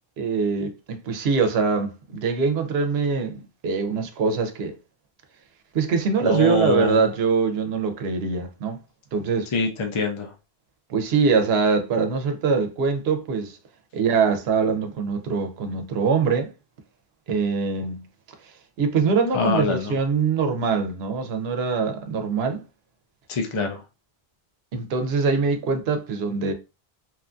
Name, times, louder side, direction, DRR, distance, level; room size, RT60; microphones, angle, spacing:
voice 1, 0.2-4.8 5.7-8.8 9.1-9.5 10.9-13.6 13.9-16.5 17.3-18.0 18.4-18.5 18.8-22.6 24.7-26.5, right 5 dB, 85° right, 0.8 m, -23 dB
voice 2, 6.2-7.0 9.5-10.3 19.3-19.9 23.3-23.8, left 3 dB, 50° left, 0.4 m, -24 dB
3.0 x 2.3 x 2.4 m
omnidirectional pair, 1.0 m